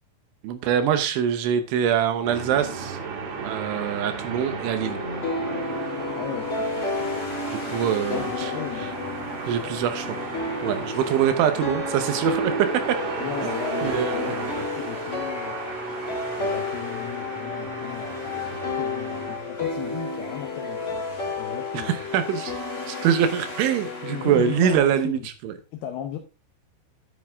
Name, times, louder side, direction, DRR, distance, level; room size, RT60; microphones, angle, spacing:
voice 1, 0.4-3.0 3.4-5.0 7.5-8.5 8.8-8.9 9.5-10.2 10.6-12.5 13.4-13.5 13.8-14.3 21.7-22.5 22.9-25.5, right 9 dB, 80° right, 9 dB, 3.3 m, -24 dB
sound 1, 2.2-19.4, right 5 dB, 55° right, 2.1 m, -34 dB
sound 2, 4.8-24.8, left 3 dB, 20° left, 1.9 m, -31 dB
voice 2, 6.1-7.7 8.1-9.9 10.7-10.9 13.2-15.6 16.4-22.1 24.1-25.3 25.7-26.2, left 10 dB, 75° left, 7 dB, 2.3 m, -37 dB
11.0 x 9.9 x 3.6 m, 0.30 s
omnidirectional pair, 5.7 m